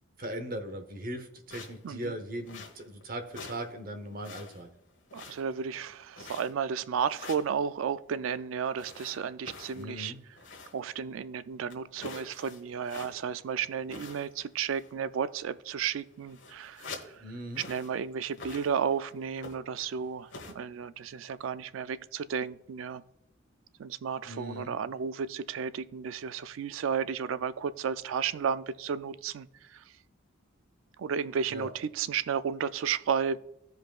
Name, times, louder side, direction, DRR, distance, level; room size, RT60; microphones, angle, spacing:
voice 1, 0.2-4.7 9.7-10.2 17.1-17.6 24.2-24.7 31.5-31.7, right 1 dB, 45° right, 0.9 m, -39 dB
sound 1, 1.5-1.9 2.4-3.0 3.3-3.7 4.0-4.7 5.1-5.7 6.1-6.7 7.1-7.5 8.8-10.9 11.2-11.3 11.7-13.4 13.9-14.5 14.7-15.0 15.7-15.8 16.0-17.2 17.5-18.0 18.3-19.0 19.4-19.8 20.3-20.5, left 4 dB, 65° left, 1.4 m, -46 dB
voice 2, 1.8-2.2 5.1-10.1 10.7-17.2 17.7-23.0 23.8-29.8 31.0-33.4, right 7 dB, 80° right, 0.4 m, -33 dB
15.5 x 5.2 x 2.4 m
head